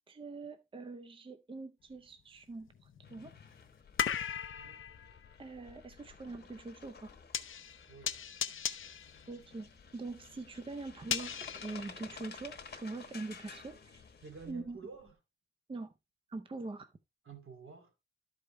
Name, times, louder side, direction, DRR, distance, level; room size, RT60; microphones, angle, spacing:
voice 1, 0.0-3.3 5.4-7.2 9.3-14.0 14.5-14.8 15.7-15.9 16.3-16.9, right 3 dB, 25° right, 0.6 m, -44 dB
sound 1, 1.9-2.0 2.6-12.7 13.1-14.7 15.1-15.2, left 8 dB, 75° left, 0.6 m, -40 dB
sound 2, 3.0-14.5, left 5 dB, 50° left, 1.1 m, -53 dB
voice 2, 7.9-8.2 14.2-15.2 17.2-17.9, right 5 dB, 80° right, 2.4 m, -50 dB
12.5 x 5.0 x 3.1 m
wide cardioid pair, 175°, 21 cm